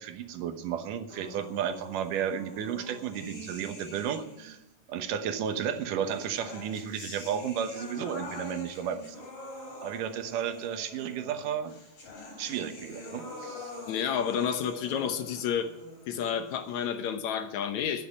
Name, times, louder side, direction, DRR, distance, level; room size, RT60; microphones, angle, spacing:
voice 1, 0.0-4.6 4.9-9.2 9.8-11.8 12.4-13.7, right 8 dB, 90° right, 9 dB, 2.7 m, -33 dB
sound 1, 1.1-4.5 5.5-17.1, left 1 dB, 45° left, 4.6 m, -45 dB
voice 2, 13.9-15.7 16.1-18.1, left 8 dB, 70° left, 8 dB, 2.2 m, -30 dB
12.5 x 10.0 x 8.7 m, 0.90 s
omnidirectional pair, 3.7 m